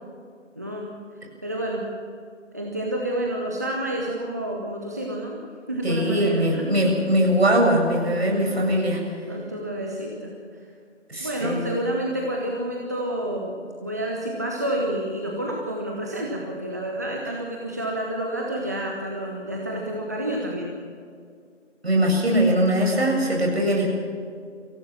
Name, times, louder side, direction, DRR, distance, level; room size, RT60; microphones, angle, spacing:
voice 1, 0.6-0.9 1.4-1.8 2.5-5.4 5.7-6.7 8.6-8.8 9.3-10.3 11.2-20.7, right 1 dB, 15° right, -2 dB, 0.9 m, -29 dB
voice 2, 5.8-9.0 11.1-11.7 21.8-23.9, equal, 55° right, -1 dB, 7.8 m, -21 dB
24.5 x 17.0 x 7.3 m, 2.2 s
figure-of-eight pair, 160°, 37 cm